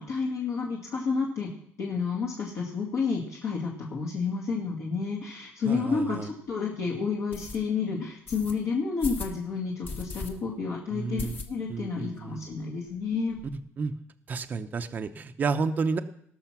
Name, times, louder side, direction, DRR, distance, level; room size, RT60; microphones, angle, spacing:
voice 1, 0.0-1.5 1.8-13.4, left 5 dB, 60° left, -3 dB, 2.3 m, -30 dB
voice 2, 5.7-6.3 10.9-11.4 11.7-12.5 13.5-13.9 14.3-16.0, right 4 dB, 35° right, 7 dB, 0.7 m, -31 dB
sound 1, 5.9-6.0 6.5-6.6 7.3-7.6 8.3-8.5 9.0-9.4 9.8-10.3 10.6-10.7 11.2-11.8 12.2-12.3 12.5-12.6 12.9-13.5, left 3 dB, 35° left, 1.5 m, -37 dB
19.0 x 6.3 x 6.0 m, 0.68 s
cardioid pair, 140°, 5 cm